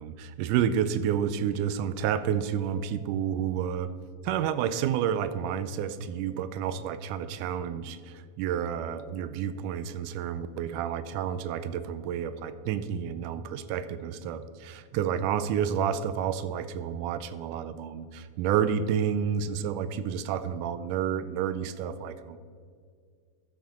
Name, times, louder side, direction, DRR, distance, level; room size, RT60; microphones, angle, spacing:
voice 1, 0.0-4.0 4.2-22.4, right 8 dB, 85° right, 13 dB, 2.0 m, -30 dB
13.0 x 6.0 x 4.3 m, 2.1 s
omnidirectional pair, 3.6 m